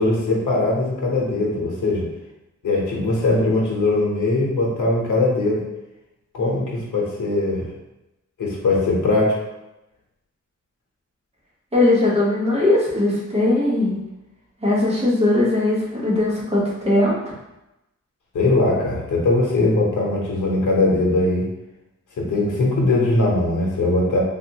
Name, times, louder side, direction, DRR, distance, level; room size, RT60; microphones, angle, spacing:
voice 1, 0.0-2.1 2.6-5.6 6.3-7.7 8.4-9.4 18.3-21.5 22.2-24.2, left 2 dB, 85° left, -3 dB, 0.9 m, -20 dB
voice 2, 11.7-14.0 14.6-17.2, left 2 dB, 20° right, -7 dB, 1.1 m, -19 dB
3.4 x 2.5 x 2.9 m, 0.93 s
wide cardioid pair, 160°, 30 cm